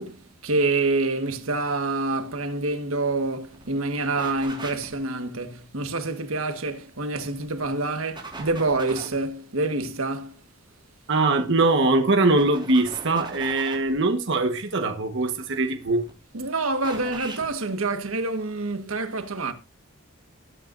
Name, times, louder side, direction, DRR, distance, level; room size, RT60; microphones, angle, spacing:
voice 1, 0.0-10.3 16.3-19.5, right 2 dB, 85° right, 1.6 m, -27 dB
sound 1, 3.2-3.3 3.5-3.7 4.2-5.0 7.1-7.7 8.2-9.2 11.4-11.7 12.4-13.9 15.6-16.1 16.8-17.5, right 3 dB, 25° right, 4.6 m, -39 dB
voice 2, 11.1-16.0, right 2 dB, 60° right, 1.3 m, -22 dB
20.5 x 9.0 x 2.6 m
head